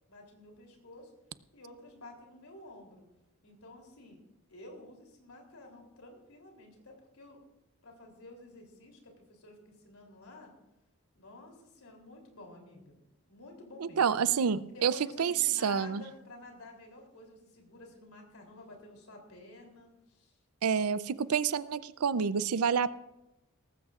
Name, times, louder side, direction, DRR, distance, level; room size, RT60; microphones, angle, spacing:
voice 1, 0.1-1.1 1.5-3.1 3.4-4.2 4.5-7.4 7.8-10.5 11.1-13.0 13.2-14.1 14.7-20.4, left 2 dB, 80° left, 2 dB, 3.3 m, -51 dB
voice 2, 13.8-14.9 15.2-15.3 15.6-16.0 20.6-22.9, right 6 dB, 85° right, 16 dB, 0.5 m, -28 dB
18.5 x 15.0 x 2.5 m, 0.94 s
head